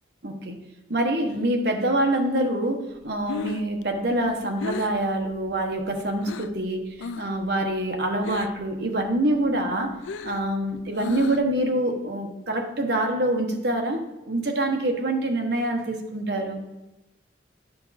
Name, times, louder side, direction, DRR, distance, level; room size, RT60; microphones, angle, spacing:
voice 1, 0.2-0.6 0.9-10.0 10.2-16.6, right 1 dB, 60° right, 3 dB, 1.1 m, -25 dB
Breathing, 3.0-6.6 7.0-7.4 7.7-8.7 9.1-11.6, left 5 dB, 85° left, 0.4 m, -36 dB
10.5 x 5.2 x 4.2 m, 0.98 s
head